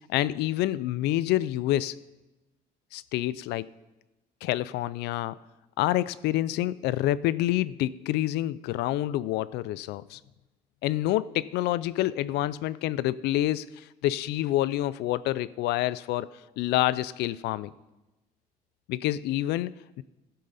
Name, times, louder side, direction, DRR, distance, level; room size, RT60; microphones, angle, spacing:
voice 1, 0.1-2.0 2.9-3.6 4.4-5.3 5.8-10.2 10.8-16.3 16.6-17.7 18.9-20.0, left 15 dB, 85° left, 18 dB, 0.4 m, -27 dB
15.5 x 6.5 x 4.1 m, 1.0 s
cardioid pair, 110°, 17 cm